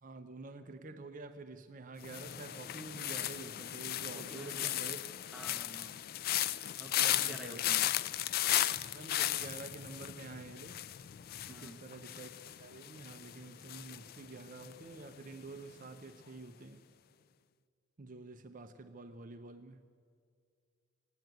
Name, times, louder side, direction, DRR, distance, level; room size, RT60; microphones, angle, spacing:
voice 1, 0.0-5.0 6.9-7.6 8.9-10.8 11.5-16.9 18.0-19.9, right 3 dB, 45° right, 0.6 m, -48 dB
sound 1, 2.0-15.1 15.3-15.8, left 13 dB, 50° left, 0.3 m, -36 dB
voice 2, 4.1-4.7 5.3-6.0 6.8-7.9 11.5-11.8, right 1 dB, ahead, 1.0 m, -49 dB
17.0 x 9.2 x 9.1 m
head